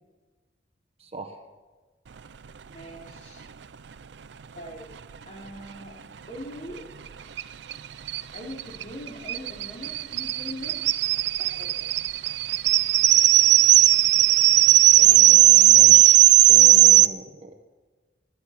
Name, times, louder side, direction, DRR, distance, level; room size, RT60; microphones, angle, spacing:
voice 1, 1.0-1.4 15.0-16.2 16.5-17.7, right 2 dB, 35° right, 5 dB, 1.3 m, -39 dB
voice 2, 2.6-3.5 4.5-4.9 5.3-6.9 8.3-10.8 11.4-11.9, equal, 40° left, -1 dB, 3.9 m, -41 dB
sound 1, 7.4-7.5 7.7-7.8 8.1-17.1, right 14 dB, 70° right, 0.5 m, -16 dB
22.0 x 10.5 x 6.0 m, 1.3 s
head